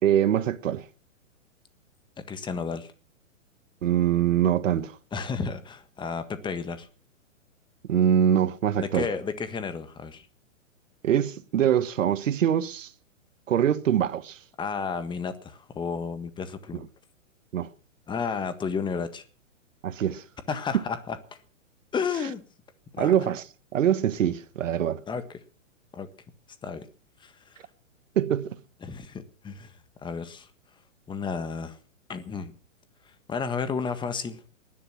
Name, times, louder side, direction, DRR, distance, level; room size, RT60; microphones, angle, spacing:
voice 1, 0.0-0.8 3.8-4.9 7.9-9.1 11.0-12.9 13.5-14.4 17.5-17.7 19.8-20.2 23.0-23.4 23.7-25.0 28.1-28.6, right 10 dB, 70° right, 1.6 m, -23 dB
voice 2, 2.3-2.9 5.1-6.9 8.8-10.3 14.6-16.8 18.1-19.2 20.5-21.2 21.9-22.4 22.9-23.3 25.1-25.4 25.9-26.1 26.6-26.9 27.2-27.6 28.8-29.7 30.0-30.5 31.1-31.8 32.1-32.5 33.3-34.4, left 5 dB, 10° left, 1.5 m, -32 dB
19.5 x 11.5 x 6.0 m
hypercardioid pair, 135°, 39 cm